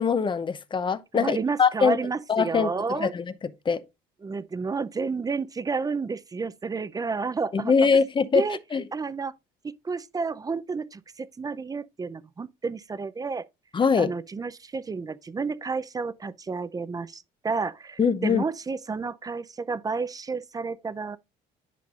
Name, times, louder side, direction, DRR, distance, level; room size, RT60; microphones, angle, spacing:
voice 1, 0.0-2.0 2.3-3.2 3.7-3.8 7.5-8.4 8.7-8.8 13.7-14.1 18.0-18.4, left 5 dB, 30° left, 0.7 m, -22 dB
voice 2, 1.1-3.1 4.2-7.7 8.3-8.6 8.9-9.3 9.6-13.5 14.0-21.2, right 4 dB, 20° right, 0.5 m, -31 dB
10.5 x 5.2 x 2.5 m
cardioid pair, 110°, 17 cm